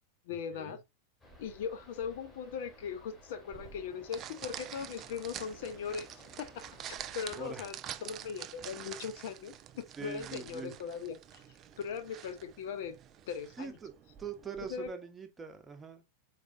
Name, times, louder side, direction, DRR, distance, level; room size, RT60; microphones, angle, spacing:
voice 1, 0.3-0.8 1.4-11.4 11.8-13.0 13.3-13.7 14.7-14.9, left 7 dB, 55° left, 0.5 m, -39 dB
sound 1, 1.2-7.4, equal, 15° left, 2.0 m, -57 dB
sound 2, 3.5-14.9, right 10 dB, 30° right, 0.3 m, -47 dB
voice 2, 7.4-7.7 10.0-10.7 13.6-13.9 14.2-16.0, right 6 dB, 15° right, 0.8 m, -43 dB
4.8 x 4.1 x 2.6 m
figure-of-eight pair, 90°, 0 cm